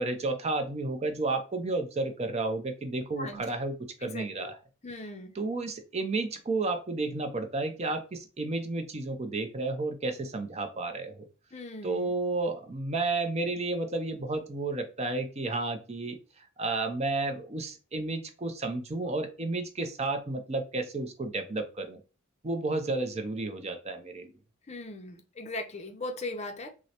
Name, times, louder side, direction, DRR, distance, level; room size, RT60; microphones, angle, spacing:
voice 1, 0.0-4.6 5.4-11.2 11.8-22.0 22.4-24.3, right 2 dB, 30° right, 6 dB, 0.5 m, -32 dB
voice 2, 4.0-4.5 4.8-5.3 11.5-12.1 24.7-26.7, left 2 dB, 30° left, 6 dB, 0.5 m, -39 dB
5.9 x 2.1 x 2.8 m, 0.33 s
head